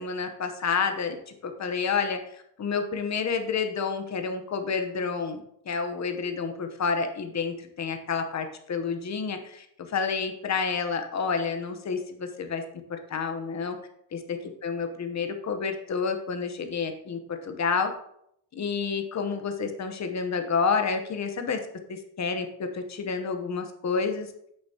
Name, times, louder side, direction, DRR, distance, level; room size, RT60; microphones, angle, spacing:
voice 1, 0.0-5.4 5.6-12.6 12.9-13.8 14.1-17.9 18.5-21.6 21.9-24.3, left 5 dB, 35° left, 6 dB, 0.9 m, -29 dB
9.0 x 6.6 x 2.8 m, 0.73 s
cardioid pair, 150°, 46 cm